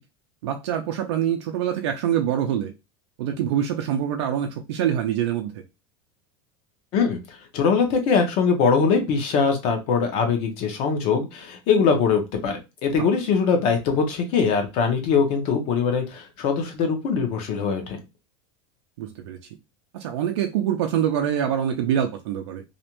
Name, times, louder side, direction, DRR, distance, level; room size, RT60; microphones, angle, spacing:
voice 1, 0.4-2.7 3.2-5.6 12.9-13.1 19.0-19.4 19.9-22.6, right 9 dB, 90° right, 0.5 m, -25 dB
voice 2, 7.5-18.0, left 5 dB, 40° left, 0.6 m, -22 dB
2.5 x 2.1 x 2.9 m
supercardioid pair, 170°, 14 cm